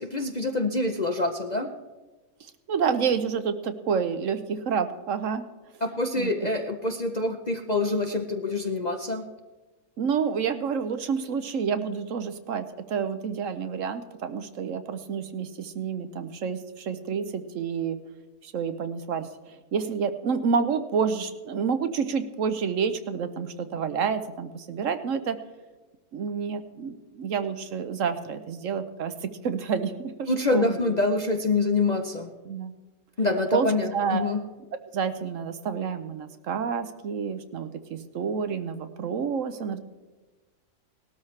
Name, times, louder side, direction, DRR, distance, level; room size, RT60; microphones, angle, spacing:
voice 1, 0.0-1.7 5.8-9.2 30.3-32.3 33.2-34.4, left 2 dB, 40° left, 4 dB, 0.6 m, -26 dB
voice 2, 2.4-5.4 6.2-6.5 10.0-18.0 18.4-25.4 26.1-30.9 32.5-32.7 33.5-33.7 33.9-34.4 34.9-39.8, right 6 dB, 60° right, 10 dB, 1.0 m, -29 dB
19.0 x 13.0 x 3.2 m, 1.2 s
omnidirectional pair, 1.6 m